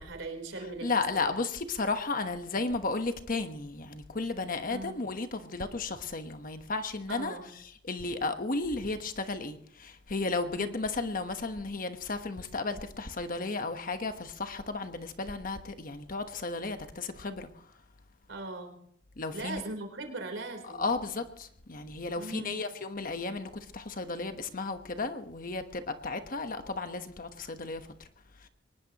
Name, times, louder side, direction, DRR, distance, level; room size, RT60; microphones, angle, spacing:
voice 1, 0.0-1.3 4.7-4.9 7.1-7.5 10.6-10.7 18.3-18.8 19.3-20.8 22.2-22.6, right 2 dB, 75° right, 3.9 m, -39 dB
voice 2, 0.8-17.5 19.2-19.6 20.6-27.8 28.4-28.5, left 3 dB, 45° left, 1.2 m, -34 dB
23.5 x 20.0 x 3.0 m
head